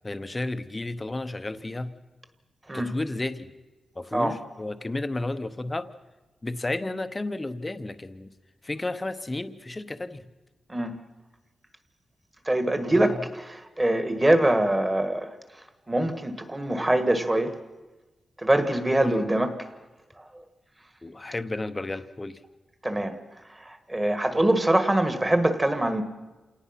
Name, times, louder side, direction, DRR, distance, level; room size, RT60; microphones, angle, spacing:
voice 1, 0.0-1.9 2.7-3.5 4.0-5.9 6.4-8.3 8.6-10.3 12.9-13.3 19.0-19.2 21.0-22.4, left 2 dB, 15° left, 12 dB, 0.8 m, -32 dB
voice 2, 10.7-11.0 12.4-15.3 15.9-17.5 18.4-19.7 22.8-23.2 23.6-26.0, right 1 dB, 15° right, 9 dB, 1.6 m, -24 dB
28.5 x 18.5 x 5.8 m, 1.2 s
wide cardioid pair, 175°, 0 cm